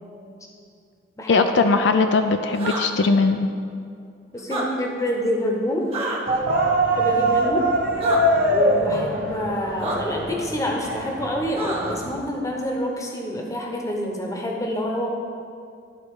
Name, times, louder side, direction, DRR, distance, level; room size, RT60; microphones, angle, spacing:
voice 1, 1.3-3.4, left 4 dB, 70° left, 7 dB, 0.4 m, -19 dB
sound 1, 2.5-2.8 4.4-4.6 5.9-6.2 8.0-8.2 9.8-10.0 11.5-12.0, right 2 dB, 30° right, 1.1 m, -27 dB
voice 2, 4.3-5.9 7.0-7.7 8.5-15.1, equal, 15° left, 0 dB, 0.9 m, -27 dB
sound 2, 6.3-12.2, right 1 dB, 50° right, 0.8 m, -23 dB
12.0 x 4.1 x 4.7 m, 2.4 s
head